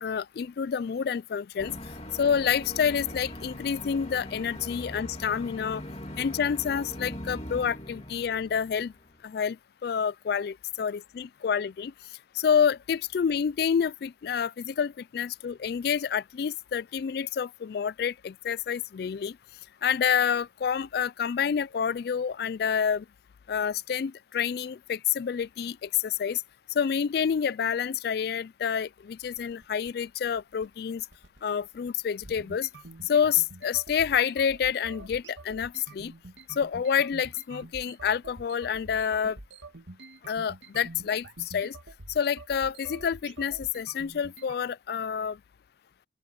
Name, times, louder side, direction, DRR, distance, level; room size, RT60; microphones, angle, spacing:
voice 1, 0.0-1.7 2.1-5.8 6.2-8.9 9.2-9.6 9.8-11.9 12.4-19.4 19.8-23.0 23.5-26.4 26.8-31.0 31.4-32.7 33.1-36.1 36.6-39.4 40.3-41.8 42.2-45.4, left 7 dB, 55° left, 0.3 m, -28 dB
sound 1, 1.6-9.2, left 1 dB, 35° left, 3.1 m, -41 dB
sound 2, 29.4-44.6, right 2 dB, 80° right, 2.2 m, -47 dB
open air
head